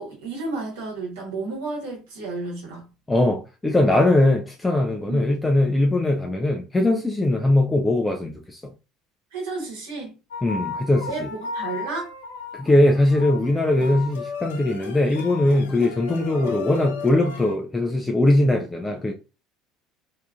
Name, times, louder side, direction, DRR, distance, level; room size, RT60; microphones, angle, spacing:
voice 1, 0.0-2.9 5.1-5.2 9.3-10.1 11.1-12.1, right 3 dB, 75° right, 1.2 m, -32 dB
voice 2, 3.1-8.6 10.4-11.3 12.6-19.1, left 1 dB, 15° left, 0.5 m, -20 dB
sound 1, 10.3-17.5, left 5 dB, 75° left, 0.4 m, -35 dB
3.5 x 2.8 x 2.3 m
figure-of-eight pair, 65°, 0 cm